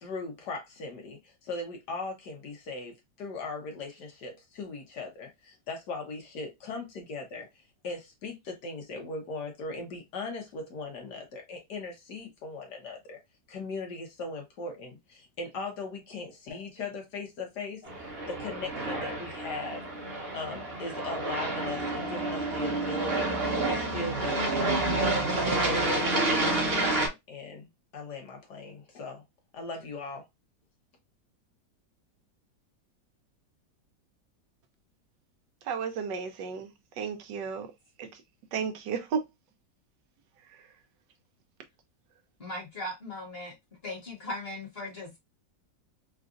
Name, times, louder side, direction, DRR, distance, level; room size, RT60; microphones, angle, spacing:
voice 1, 0.0-7.5 7.8-13.2 13.5-17.9 18.3-19.8 20.3-27.7 27.9-29.2 29.5-30.2, left 3 dB, 70° left, 1.5 m, -39 dB
Aircraft, 17.9-27.1, right 2 dB, 45° right, 0.9 m, -29 dB
voice 2, 35.6-37.7 38.0-38.2 38.5-39.3 40.4-40.7, right 6 dB, 80° right, 1.3 m, -34 dB
voice 3, 42.4-43.5 43.8-45.2, left 1 dB, 35° left, 1.4 m, -38 dB
3.8 x 2.4 x 2.4 m
omnidirectional pair, 1.9 m